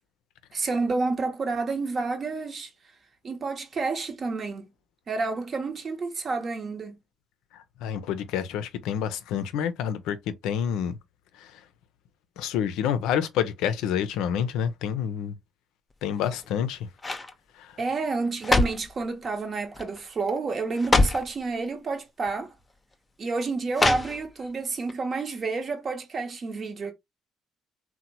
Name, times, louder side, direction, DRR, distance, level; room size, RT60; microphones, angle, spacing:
voice 1, 0.5-2.7 3.2-4.7 5.1-7.0 17.8-22.5 23.2-26.9, right 3 dB, 45° right, 0.8 m, -29 dB
voice 2, 7.5-11.0 11.4-11.6 12.4-15.4 16.0-16.9 17.6-17.8, left 8 dB, 75° left, 0.4 m, -28 dB
sound 1, 16.1-16.6 17.0-17.3 18.1-18.9 19.7-20.0 20.3-20.4 20.7-21.3 22.3-22.4 23.7-24.5 24.9-25.0, left 2 dB, 25° left, 0.5 m, -25 dB
2.9 x 2.1 x 2.8 m
hypercardioid pair, 60°, 0 cm